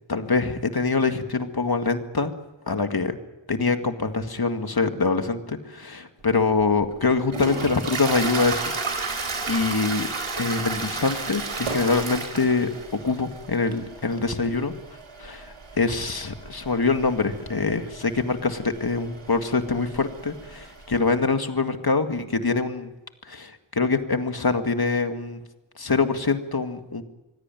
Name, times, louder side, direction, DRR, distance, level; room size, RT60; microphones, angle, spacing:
voice 1, 0.1-2.3 2.7-3.2 3.5-9.1 9.5-10.1 10.4-14.7 15.2-22.9 23.3-25.4 25.8-27.0, left 4 dB, 50° left, 7 dB, 2.1 m, -24 dB
Toilet flush, 6.3-21.0, right 3 dB, 85° right, 4.1 m, -33 dB
25.0 x 17.0 x 9.2 m, 1.0 s
cardioid pair, 40°, 48 cm